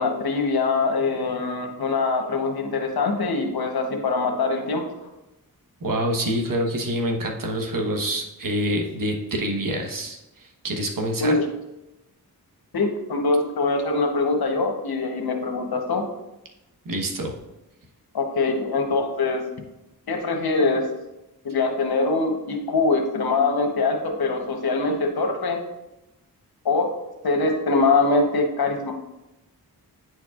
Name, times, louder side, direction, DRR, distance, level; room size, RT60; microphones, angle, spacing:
voice 1, 0.0-4.8 11.2-11.5 12.7-16.0 18.1-19.4 20.1-20.9 21.4-25.6 26.6-26.9 27.2-28.9, left 3 dB, 75° left, 4 dB, 1.1 m, -23 dB
voice 2, 5.8-11.4 16.8-17.3, right 1 dB, 60° right, 2 dB, 1.2 m, -26 dB
9.4 x 4.5 x 2.4 m, 0.93 s
cardioid pair, 55°, 38 cm